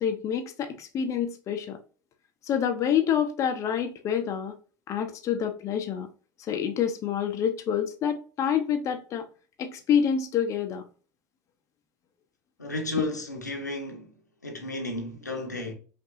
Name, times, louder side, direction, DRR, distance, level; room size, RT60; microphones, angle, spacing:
voice 1, 0.0-1.8 2.4-4.5 4.9-6.1 6.5-9.2 9.6-10.8, left 8 dB, 35° left, 0.7 m, -27 dB
voice 2, 12.6-14.1 14.4-15.7, left 2 dB, 90° left, 0.9 m, -32 dB
5.3 x 2.6 x 2.5 m
figure-of-eight pair, 75°, 9 cm